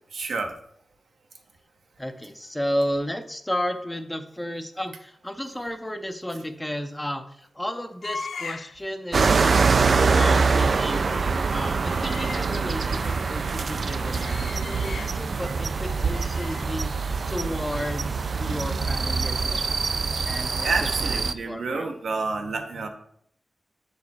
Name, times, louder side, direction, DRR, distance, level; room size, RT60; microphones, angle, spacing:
voice 1, 0.1-0.6 13.1-13.3 15.3-15.5 20.6-22.9, right 4 dB, 90° right, 3 dB, 0.9 m, -29 dB
voice 2, 2.0-19.7 20.2-20.9 21.2-21.9, equal, 10° left, 8 dB, 0.5 m, -33 dB
sound 1, 8.0-8.8 9.1-9.3 9.7-13.4 13.7-15.4 15.7-19.5 19.7-19.9, left 5 dB, 85° left, 0.3 m, -41 dB
sound 2, 9.1-21.3, right 4 dB, 55° right, 0.3 m, -24 dB
7.4 x 4.8 x 4.1 m, 0.69 s
wide cardioid pair, 130°, 0 cm